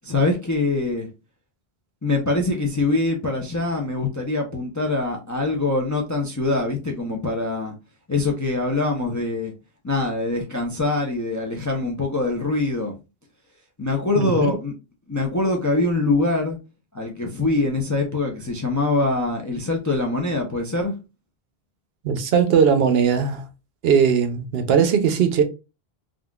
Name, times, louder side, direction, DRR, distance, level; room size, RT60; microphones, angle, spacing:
voice 1, 0.0-1.1 2.0-7.7 8.1-9.5 9.8-12.9 13.8-14.7 15.1-16.6 16.9-20.9, left 2 dB, 30° left, 0.4 m, -23 dB
voice 2, 14.2-14.5 22.0-23.4 23.8-25.4, right 7 dB, 70° right, 0.8 m, -19 dB
3.7 x 2.3 x 2.3 m
omnidirectional pair, 1.1 m